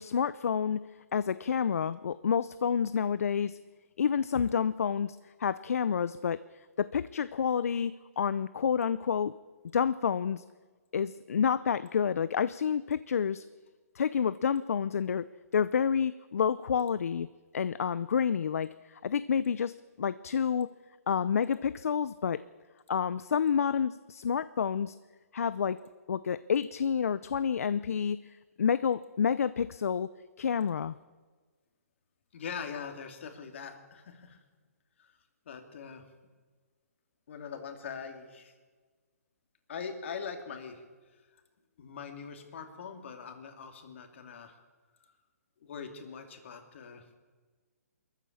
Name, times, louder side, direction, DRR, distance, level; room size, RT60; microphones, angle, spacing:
voice 1, 0.0-3.6 4.0-6.4 6.8-9.3 9.7-10.4 10.9-13.4 14.0-15.3 15.5-17.3 17.5-20.7 21.1-22.4 22.9-25.0 25.3-25.8 26.1-28.2 28.6-30.1 30.4-31.0, left 7 dB, 65° left, 16 dB, 0.6 m, -29 dB
voice 2, 32.3-34.4 35.0-35.1 35.5-36.0 37.3-38.5 39.7-40.8 41.8-44.5 45.6-47.0, left 6 dB, 50° left, 6 dB, 2.9 m, -42 dB
22.5 x 14.0 x 8.8 m, 1.4 s
hypercardioid pair, 160°, 9 cm